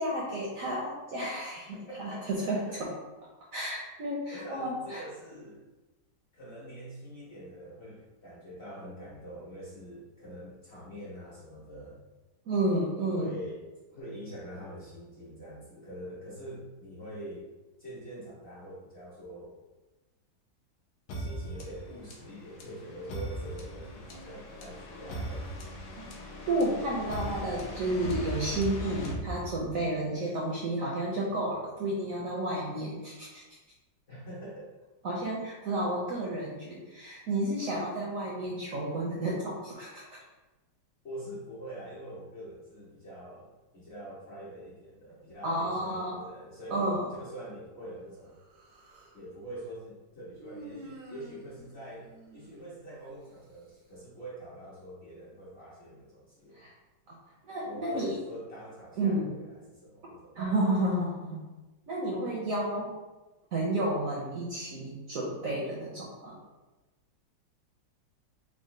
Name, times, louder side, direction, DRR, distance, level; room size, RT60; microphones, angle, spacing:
voice 1, 0.0-2.9 3.5-5.0 12.5-13.3 26.0-26.1 26.5-33.4 35.0-40.2 45.4-46.2 46.7-47.1 56.5-56.7 57.1-57.2 57.4-58.2 59.0-59.3 60.4-61.4 61.9-62.9 63.5-66.4, right 1 dB, 70° right, -4 dB, 0.8 m, -31 dB
voice 2, 1.7-2.3 2.6-2.9 4.3-5.7 6.3-12.0 13.1-13.6 13.9-17.5 17.8-19.6 21.1-25.4 31.1-31.4 34.1-34.8 41.0-48.4 49.1-56.6 57.6-60.4, right 1 dB, 50° left, -8 dB, 0.9 m, -44 dB
sound 1, 21.1-29.9, right 1 dB, 75° left, 1.2 m, -39 dB
Human voice, 48.3-49.2 50.4-53.1, right 1 dB, 90° right, 1.5 m, -50 dB
3.7 x 2.0 x 3.7 m, 1.1 s
omnidirectional pair, 1.9 m